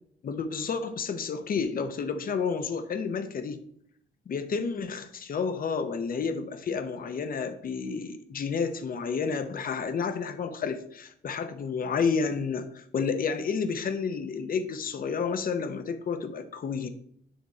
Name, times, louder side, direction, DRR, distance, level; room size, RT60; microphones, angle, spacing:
voice 1, 0.2-3.6 4.3-16.9, left 5 dB, 45° left, 10 dB, 0.8 m, -30 dB
8.7 x 3.5 x 4.3 m, 0.69 s
cardioid pair, 90°, 20 cm